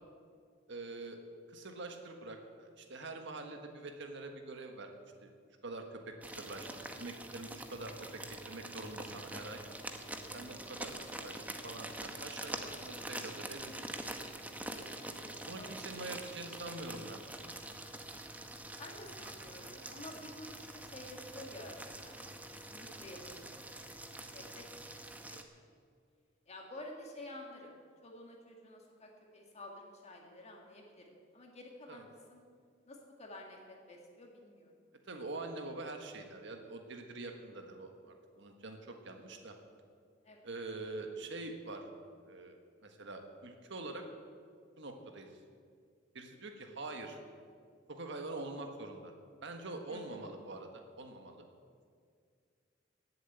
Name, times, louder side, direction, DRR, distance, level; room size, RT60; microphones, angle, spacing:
voice 1, 0.7-1.2 1.5-4.9 5.2-5.3 5.6-8.1 8.4-9.6 10.3-13.7 15.4-17.2 31.9-32.0 35.1-39.5 40.4-41.8 42.2-44.0 44.8-45.3 46.1-47.2 47.9-49.1 49.4-51.5, right 2 dB, 65° right, 4 dB, 1.5 m, -45 dB
sound 1, 6.2-25.4, right 1 dB, 10° right, 1.0 m, -45 dB
voice 2, 10.3-10.7 15.5-15.7 18.8-23.9 24.3-24.7 25.2-25.6 26.5-27.7 28.0-31.1 31.3-32.4 32.9-34.7 40.2-40.5 49.9-50.2, left 1 dB, 35° left, 0 dB, 1.9 m, -51 dB
18.0 x 7.7 x 8.0 m, 2.2 s
head